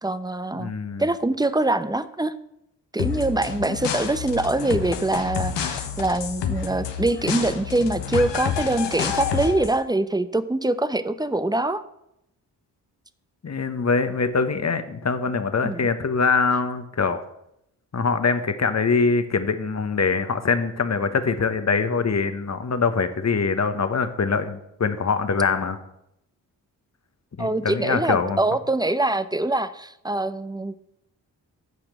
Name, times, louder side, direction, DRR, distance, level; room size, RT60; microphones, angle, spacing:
voice 1, 0.0-0.7 1.0-2.3 2.9-11.8 15.6-15.9 27.4-30.8, right 2 dB, 10° right, 13 dB, 0.8 m, -24 dB
voice 2, 0.6-1.0 13.4-17.2 17.9-25.8 27.4-28.4, left 4 dB, 40° left, 10 dB, 1.2 m, -23 dB
sound 1, 3.0-9.8, left 7 dB, 75° left, 1.2 m, -29 dB
9.5 x 5.0 x 7.3 m, 0.80 s
supercardioid pair, 40°, 43 cm